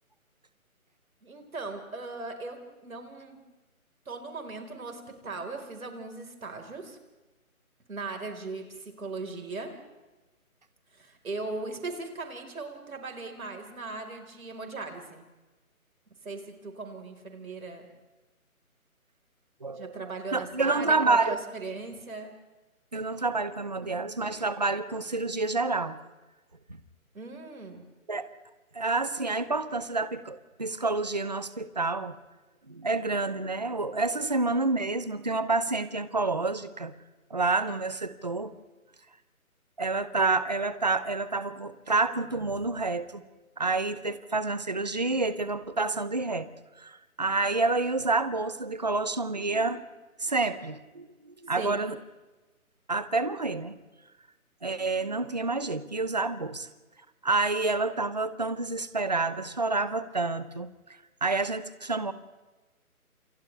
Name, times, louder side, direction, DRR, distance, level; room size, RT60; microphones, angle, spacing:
voice 1, 1.2-3.4 4.0-7.0 7.9-9.7 10.9-15.2 16.2-17.9 19.7-22.3 23.8-23.9 27.1-27.8 51.5-51.8, right 3 dB, 70° right, 3 dB, 4.8 m, -38 dB
voice 2, 19.6-19.9 20.3-21.4 22.9-26.0 28.1-28.3 28.7-32.1 32.7-36.9 37.3-38.5 39.8-43.2 43.6-46.5 46.8-49.9 50.2-52.0 52.9-53.8 54.6-56.7 57.2-60.7 61.2-62.1, right 3 dB, 30° right, 13 dB, 0.8 m, -28 dB
30.0 x 28.0 x 3.4 m, 1.1 s
hypercardioid pair, 175°, 43 cm